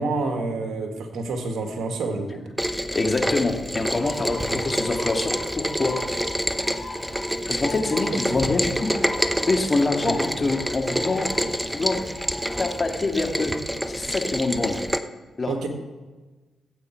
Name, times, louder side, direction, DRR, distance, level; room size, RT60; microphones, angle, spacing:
voice 1, 0.0-2.4 4.5-4.6 8.1-8.2 10.0-10.2 15.5-15.7, right 3 dB, 70° right, 4 dB, 1.8 m, -28 dB
Rain, 2.6-15.0, equal, 5° right, 0.9 m, -28 dB
voice 2, 2.9-6.0 7.5-8.9 9.5-11.3 11.7-12.0 12.6-13.5 13.9-14.8 15.4-15.7, left 3 dB, 40° left, 3 dB, 2.1 m, -25 dB
Bird, 3.8-13.1, left 2 dB, 25° left, 3.7 m, -39 dB
16.5 x 8.6 x 4.6 m, 1.2 s
supercardioid pair, 50°, 0 cm